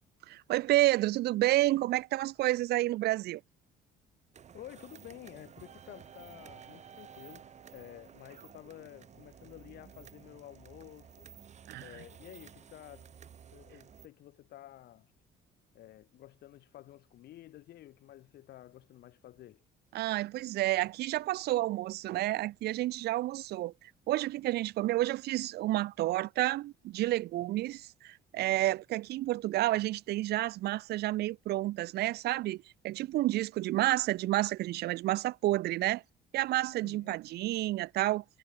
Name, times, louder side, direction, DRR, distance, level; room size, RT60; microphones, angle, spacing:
voice 1, 0.3-3.4 11.7-11.9 19.9-23.7 24.1-36.0 36.3-38.2, right 16 dB, 75° right, 1.1 m, -30 dB
sound 1, 4.3-14.1, right 8 dB, 45° right, 2.7 m, -53 dB
voice 2, 4.5-11.3 11.8-13.1 13.5-15.1 15.7-19.6 36.8-37.2, left 14 dB, 70° left, 6.0 m, -51 dB
cardioid pair, 110°, 17 cm